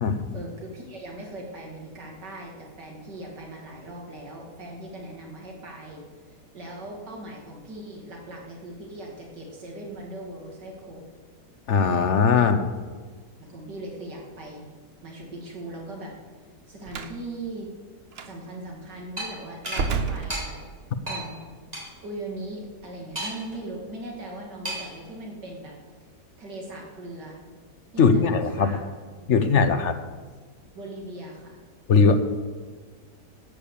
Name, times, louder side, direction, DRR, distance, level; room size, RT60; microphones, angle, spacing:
voice 1, 0.3-6.0 6.5-11.0 12.4-12.5 13.4-14.7 15.0-16.1 16.7-17.7 18.2-20.6 21.1-21.4 22.0-25.8 26.4-27.4 27.9-28.8 29.2-29.7 30.7-31.6, right 2 dB, 75° right, -1 dB, 3.0 m, -39 dB
voice 2, 11.7-12.7 28.0-28.8 29.3-30.0 31.9-32.3, left 5 dB, 55° left, 9 dB, 0.9 m, -20 dB
Slam, 16.9-17.2 18.1-18.3 19.6-20.9, right 5 dB, 50° right, 0.8 m, -30 dB
sound 1, 19.2-19.3 19.7-19.8 20.3-20.4 21.1-21.2 21.7-21.8 23.2-23.5 24.6-25.0, right 1 dB, 20° right, 3.2 m, -32 dB
13.0 x 8.6 x 7.1 m, 1.5 s
omnidirectional pair, 1.9 m